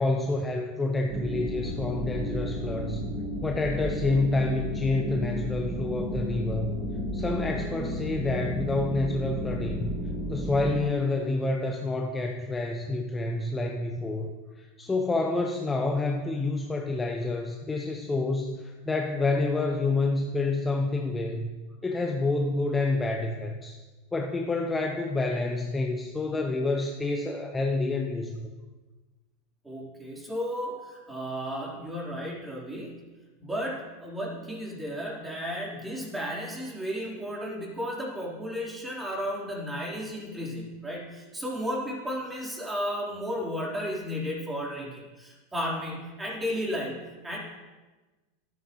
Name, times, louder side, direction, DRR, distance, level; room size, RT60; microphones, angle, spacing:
voice 1, 0.0-3.0 3.4-6.8 7.1-9.9 10.3-21.5 21.8-23.8 24.1-28.4, left 2 dB, 15° left, 3 dB, 1.0 m, -28 dB
sound 1, 1.1-10.8, equal, 30° right, 2.9 m, -33 dB
voice 2, 29.6-33.0 33.4-47.4, equal, 10° right, -4 dB, 4.1 m, -34 dB
13.0 x 11.0 x 3.2 m, 1.2 s
hypercardioid pair, 100°, 0 cm